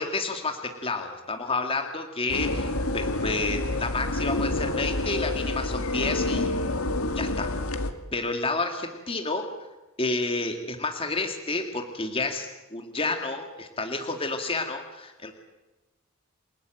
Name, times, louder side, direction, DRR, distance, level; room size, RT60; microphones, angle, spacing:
voice 1, 0.0-6.5 7.2-7.5 8.1-9.5 10.0-15.3, left 3 dB, 25° left, 4 dB, 2.2 m, -30 dB
sound 1, 2.3-7.9, left 2 dB, 75° left, 2.1 m, -28 dB
29.0 x 18.5 x 9.1 m, 1.1 s
head